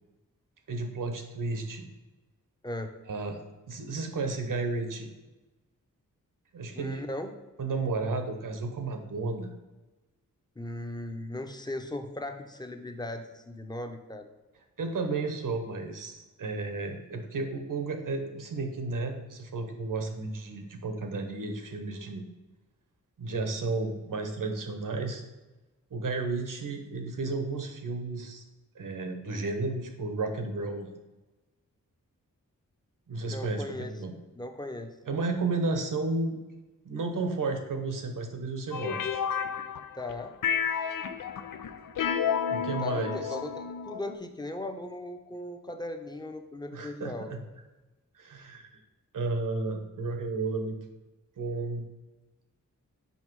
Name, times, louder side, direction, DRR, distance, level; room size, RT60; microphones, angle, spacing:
voice 1, 0.7-1.9 3.1-5.1 6.5-7.0 7.6-9.5 14.8-22.2 23.2-25.2 25.9-28.4 28.7-30.9 33.1-34.2 35.1-36.4 36.8-39.2 42.5-43.4 46.7-47.1 48.1-48.8 49.1-50.8 51.4-51.8, right 3 dB, 80° right, 5 dB, 1.1 m, -33 dB
voice 2, 6.7-7.3 10.6-14.3 33.2-33.9 34.3-35.0 39.9-40.3 42.8-47.4, left 1 dB, 15° left, 6 dB, 0.8 m, -38 dB
sound 1, 38.7-40.1 40.4-44.1, left 7 dB, 90° left, 0.5 m, -31 dB
5.7 x 5.3 x 4.6 m, 1.1 s
wide cardioid pair, 80°, 32 cm